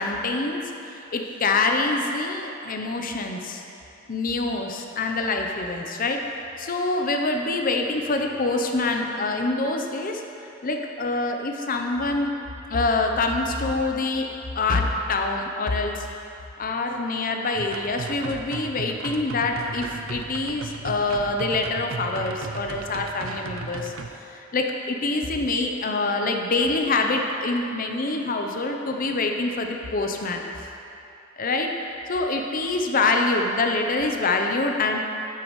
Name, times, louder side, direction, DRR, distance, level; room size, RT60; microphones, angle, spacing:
voice 1, 0.0-3.6 4.1-6.2 6.6-10.2 10.6-12.3 12.7-14.3 14.6-16.1 16.6-23.9 24.3-30.4 31.4-31.7 32.1-35.0, left 3 dB, 45° left, 3 dB, 0.6 m, -25 dB
sound 1, 17.5-24.1, right 4 dB, 80° right, 0.5 m, -36 dB
9.3 x 8.4 x 3.1 m, 2.8 s
head